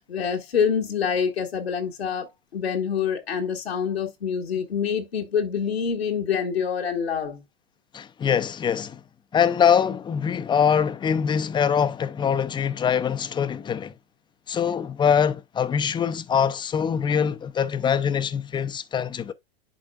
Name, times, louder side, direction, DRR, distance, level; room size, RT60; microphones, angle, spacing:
voice 1, 0.1-7.4, left 7 dB, 90° left, 1.5 m, -26 dB
voice 2, 7.9-9.0 9.3-13.9 14.5-19.3, left 7 dB, 15° left, 0.5 m, -23 dB
11.0 x 4.3 x 2.3 m
hypercardioid pair, 100°, 30 cm